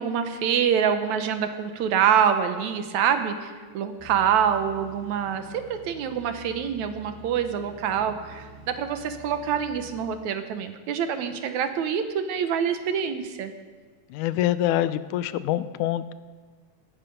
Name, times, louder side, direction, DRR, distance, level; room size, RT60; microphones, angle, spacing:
voice 1, 0.0-13.5, right 8 dB, 75° right, 8 dB, 2.3 m, -26 dB
sound 1, 4.0-10.0, right 1 dB, 5° right, 4.5 m, -47 dB
voice 2, 14.1-16.1, left 13 dB, 90° left, 15 dB, 2.1 m, -25 dB
18.0 x 14.0 x 5.3 m, 1.5 s
omnidirectional pair, 3.4 m